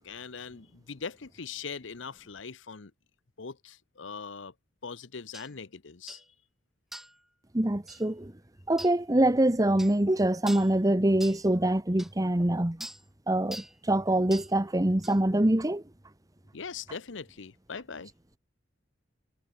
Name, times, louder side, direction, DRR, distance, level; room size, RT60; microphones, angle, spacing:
voice 1, 0.0-2.9 3.4-4.5 4.8-6.2 16.5-18.1, left 5 dB, 75° left, 0.9 m, -41 dB
sound 1, 5.3-5.5 6.1-6.3 6.9-7.2 7.9-8.0 8.8-9.0 9.8-10.0 10.5-10.7 11.2-11.4 12.0-12.1 12.8-13.0 13.5-13.8 14.3-14.5 15.0-15.2, right 1 dB, ahead, 1.6 m, -43 dB
voice 2, 7.5-8.3 8.7-12.9 13.3-15.8, right 1 dB, 20° right, 1.1 m, -25 dB
head